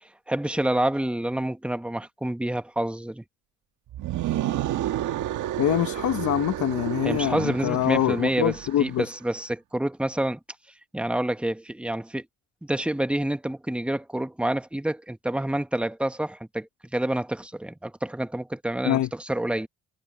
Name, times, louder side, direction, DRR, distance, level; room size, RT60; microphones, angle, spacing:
voice 1, 0.0-3.2 7.0-10.4 10.9-12.2 12.6-19.7, right 1 dB, 5° right, 1.2 m, -28 dB
sound 1, 3.9-8.9, right 13 dB, 80° right, 1.9 m, -30 dB
voice 2, 5.6-9.1 18.8-19.1, left 12 dB, 70° left, 1.1 m, -24 dB
cardioid pair, 90°, 30 cm